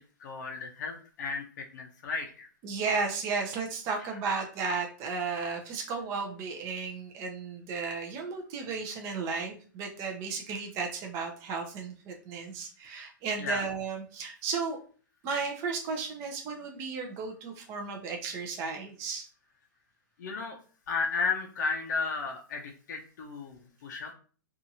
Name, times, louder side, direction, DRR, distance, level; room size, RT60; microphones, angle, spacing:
voice 1, 0.2-2.5 4.0-4.1 13.4-13.6 20.2-20.6 20.9-22.6 22.9-24.1, left 4 dB, 60° left, 2 dB, 0.5 m, -33 dB
voice 2, 2.6-14.8 15.2-19.2, right 4 dB, 25° right, 2 dB, 0.5 m, -34 dB
2.7 x 2.4 x 2.7 m, 0.41 s
hypercardioid pair, 140°, 11 cm